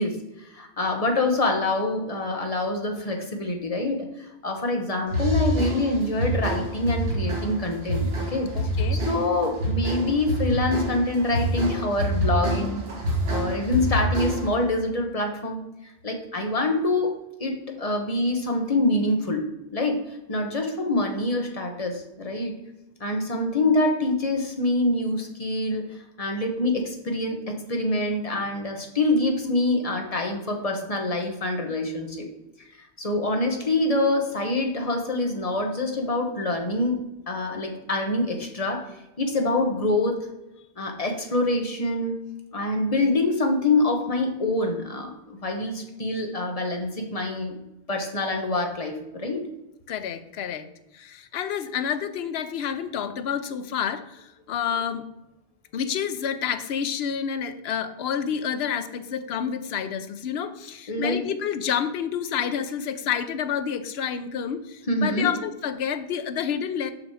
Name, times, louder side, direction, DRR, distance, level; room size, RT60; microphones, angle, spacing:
voice 1, 0.0-8.5 8.9-15.6 16.0-17.1 17.4-19.5 19.7-20.0 20.3-22.5 23.0-25.9 26.2-32.3 33.0-37.0 37.3-38.9 39.2-40.3 40.8-42.2 42.5-47.6 47.9-49.4 60.9-61.2 64.9-65.3, left 2 dB, 35° left, 3 dB, 1.2 m, -25 dB
sound 1, 5.1-14.6, right 1 dB, 60° right, 1.6 m, -27 dB
voice 2, 8.5-9.0 49.9-50.7 50.9-55.0 55.7-66.9, left 8 dB, 70° left, 10 dB, 0.9 m, -29 dB
6.1 x 6.1 x 4.9 m, 0.93 s
omnidirectional pair, 1.1 m